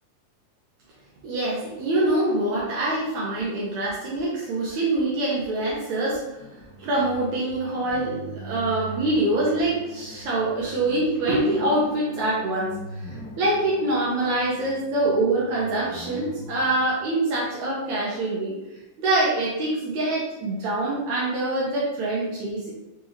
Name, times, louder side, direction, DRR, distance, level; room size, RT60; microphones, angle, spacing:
voice 1, 1.2-6.2 6.8-12.7 13.0-18.5 19.0-22.7, right 2 dB, 85° right, -6 dB, 1.6 m, -25 dB
sound 1, 6.4-18.0, right 2 dB, 55° left, 1.8 m, -42 dB
6.1 x 2.8 x 2.9 m, 0.95 s
omnidirectional pair, 4.6 m